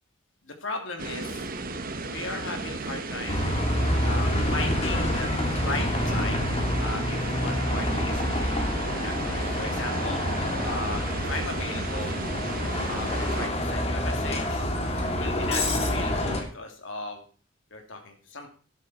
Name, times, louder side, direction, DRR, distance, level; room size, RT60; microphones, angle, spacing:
voice 1, 0.4-1.5 2.1-3.5 4.0-5.3 5.5-6.5 6.8-10.2 10.6-12.2 12.9-17.2 17.7-18.5, left 3 dB, 65° left, 3 dB, 2.9 m, -37 dB
sound 1, 1.0-13.5, right 3 dB, 45° right, 1.2 m, -34 dB
Bus, 3.3-16.4, left 1 dB, 30° left, 2.5 m, -27 dB
12.0 x 11.0 x 4.4 m, 0.41 s
head